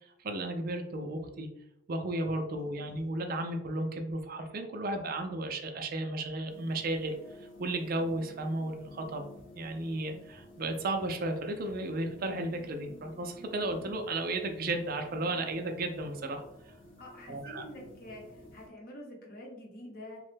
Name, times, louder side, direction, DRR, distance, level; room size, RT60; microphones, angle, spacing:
voice 1, 0.2-1.5 1.9-7.2 7.6-9.2 9.5-16.4 17.3-17.6, right 2 dB, 45° right, 5 dB, 0.4 m, -34 dB
sound 1, 6.5-18.7, left 1 dB, 75° left, 1.2 m, -52 dB
voice 2, 17.0-20.2, left 1 dB, 50° left, -1 dB, 0.8 m, -47 dB
3.0 x 2.2 x 3.2 m, 0.80 s
head